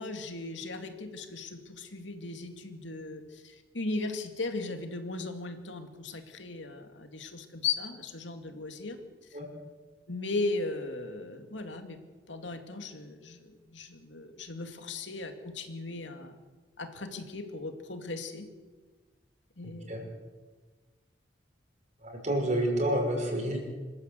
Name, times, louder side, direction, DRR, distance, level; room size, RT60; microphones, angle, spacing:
voice 1, 0.0-9.0 10.1-12.0 12.3-16.3 16.8-18.5 19.6-20.1, left 3 dB, 85° left, 6 dB, 2.5 m, -37 dB
voice 2, 22.0-23.6, right 1 dB, 40° right, 2 dB, 5.4 m, -29 dB
26.0 x 13.5 x 8.4 m, 1.3 s
head